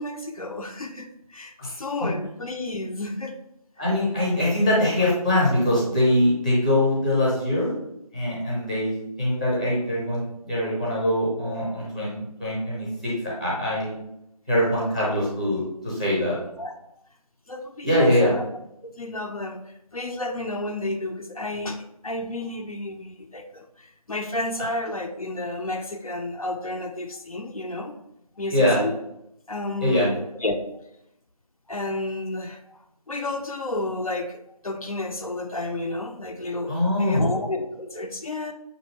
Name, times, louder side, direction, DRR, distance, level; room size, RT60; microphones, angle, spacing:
voice 1, 0.0-3.4 4.8-4.9 16.6-16.7 17.5-18.4 18.8-27.9 28.4-28.9 29.5-30.1 30.4-30.6 31.7-32.8 33.1-38.5, left 2 dB, 65° left, 4 dB, 0.5 m, -31 dB
voice 2, 3.8-7.8 8.1-13.9 14.5-16.4 17.8-18.3 28.5-28.8 29.8-30.1 36.7-37.3, left 1 dB, 10° left, -6 dB, 0.7 m, -23 dB
6.2 x 2.6 x 3.0 m, 0.82 s
figure-of-eight pair, 170°, 20 cm